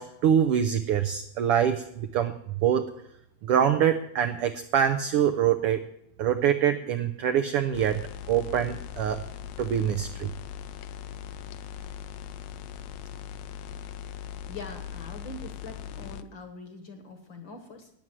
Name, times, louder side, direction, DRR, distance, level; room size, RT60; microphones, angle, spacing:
voice 1, 0.0-2.9 3.4-5.8 6.2-9.2 9.6-10.3, right 9 dB, 80° right, 9 dB, 1.3 m, -25 dB
sound 1, 7.7-16.2, left 9 dB, 75° left, 1.8 m, -40 dB
voice 2, 14.5-17.9, left 3 dB, 50° left, 7 dB, 1.7 m, -43 dB
12.5 x 9.6 x 7.5 m, 0.78 s
omnidirectional pair, 3.4 m